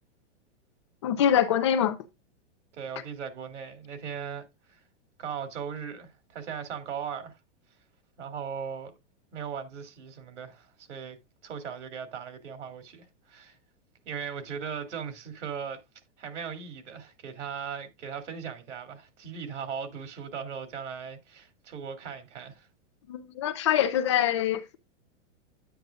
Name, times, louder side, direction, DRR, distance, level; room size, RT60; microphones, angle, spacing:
voice 1, 1.0-2.0 23.1-24.8, left 10 dB, 25° left, 0.5 m, -24 dB
voice 2, 2.7-4.8 5.2-7.4 8.2-8.9 9.3-11.2 11.4-13.6 14.0-15.8 16.2-22.7, right 7 dB, 80° right, 3.0 m, -38 dB
9.8 x 9.2 x 2.4 m
supercardioid pair, 175°, 35 cm